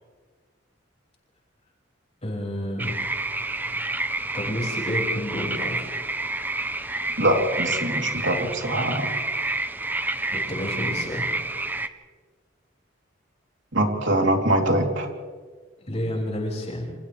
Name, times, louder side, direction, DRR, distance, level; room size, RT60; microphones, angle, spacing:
voice 1, 2.2-3.0 4.3-5.9 10.3-11.3 15.9-16.9, left 1 dB, 35° left, -2 dB, 6.2 m, -30 dB
sound 1, 2.8-11.9, right 2 dB, 10° right, 0.8 m, -29 dB
voice 2, 7.2-9.1 13.7-15.1, right 1 dB, 65° right, 1 dB, 3.5 m, -23 dB
29.5 x 27.5 x 3.4 m, 1.5 s
head